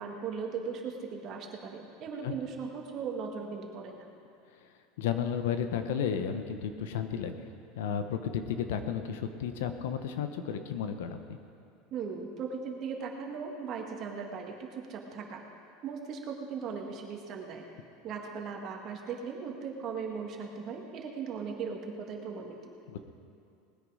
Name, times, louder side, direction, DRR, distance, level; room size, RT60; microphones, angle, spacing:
voice 1, 0.0-4.1 11.9-15.4 15.8-17.6 18.0-22.7, right 5 dB, 40° right, 1 dB, 1.8 m, -38 dB
voice 2, 5.0-7.3 7.8-11.4 22.9-23.0, left 8 dB, 80° left, 8 dB, 1.1 m, -33 dB
19.5 x 9.7 x 5.0 m, 2.5 s
supercardioid pair, 145°, 0 cm